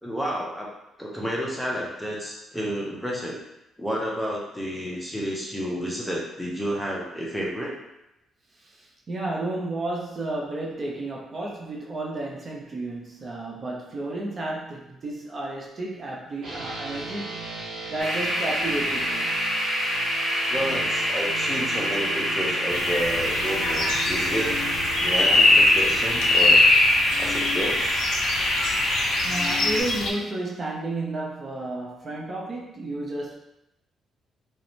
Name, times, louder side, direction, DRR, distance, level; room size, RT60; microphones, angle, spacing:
voice 1, 0.0-0.7 1.0-3.4 3.8-7.8 20.5-24.6 25.0-26.6 27.2-28.0, equal, 5° left, -3 dB, 0.6 m, -30 dB
voice 2, 8.6-17.4 17.9-19.4 29.2-33.3, right 2 dB, 45° right, -2 dB, 0.6 m, -32 dB
sound 1, 16.4-26.4, right 4 dB, 70° right, 1.0 m, -38 dB
sound 2, 18.0-29.8, equal, 45° left, 1.3 m, -27 dB
sound 3, 22.7-30.1, left 2 dB, 75° left, 0.5 m, -22 dB
2.4 x 2.1 x 3.1 m, 0.86 s
cardioid pair, 90°, 0 cm